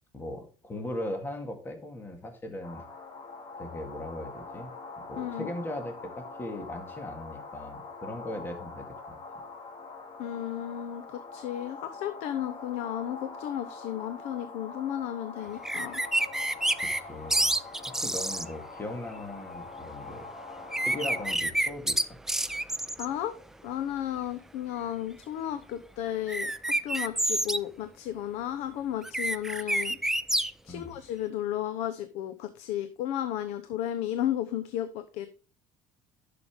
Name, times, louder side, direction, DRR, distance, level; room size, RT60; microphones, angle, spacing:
voice 1, 0.1-2.8 3.6-4.7 5.1-9.2 16.8-17.5 17.9-20.3 20.8-22.0 30.7-31.0, left 1 dB, 20° left, 5 dB, 2.0 m, -38 dB
sound 1, 2.6-21.4, left 3 dB, 45° left, 2.1 m, -44 dB
voice 2, 5.2-5.5 10.2-16.0 23.0-23.4 23.6-30.0 30.6-35.3, left 11 dB, 70° left, 11 dB, 0.8 m, -33 dB
sound 2, 15.6-17.0 17.3-18.4 20.7-23.0 26.3-27.6 29.0-30.5, right 1 dB, 5° right, 0.4 m, -28 dB
11.0 x 6.8 x 3.6 m, 0.36 s
cardioid pair, 125°, 11 cm